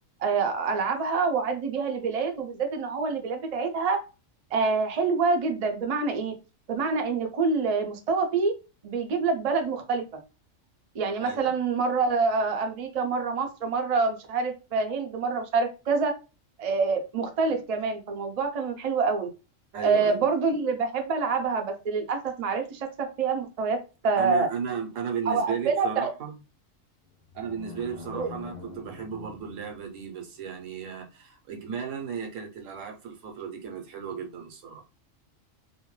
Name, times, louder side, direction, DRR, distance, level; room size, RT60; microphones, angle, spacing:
voice 1, 0.2-4.0 4.5-6.3 6.7-8.5 8.8-10.0 10.9-16.1 16.6-19.3 19.8-23.8 24.0-24.5 25.3-26.1 28.1-28.3, right 4 dB, 60° right, 0.4 m, -26 dB
voice 2, 11.2-11.5 19.7-20.2 24.2-26.4 27.3-34.8, right 7 dB, 75° right, 1.1 m, -35 dB
sound 1, 27.0-30.3, left 4 dB, 50° left, 0.5 m, -45 dB
2.6 x 2.1 x 3.0 m
omnidirectional pair, 1.3 m